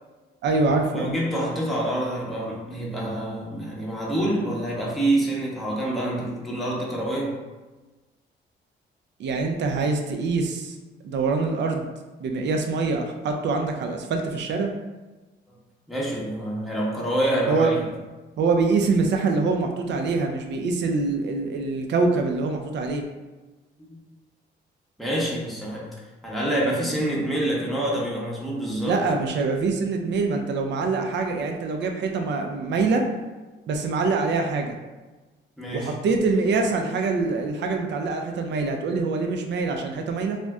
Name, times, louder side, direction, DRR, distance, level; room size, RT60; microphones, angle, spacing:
voice 1, 0.4-1.1 9.2-10.8 11.0-11.9 12.2-14.7 17.5-17.7 18.4-23.0 28.8-33.0 33.7-34.8 35.7-40.4, right 4 dB, 65° right, 3 dB, 0.5 m, -24 dB
voice 2, 1.0-7.4 15.9-17.8 23.9-24.0 25.0-25.9 26.2-29.0 35.6-36.0, right 1 dB, ahead, -5 dB, 0.8 m, -26 dB
2.5 x 2.1 x 3.4 m, 1.2 s
cardioid pair, 90°, 20 cm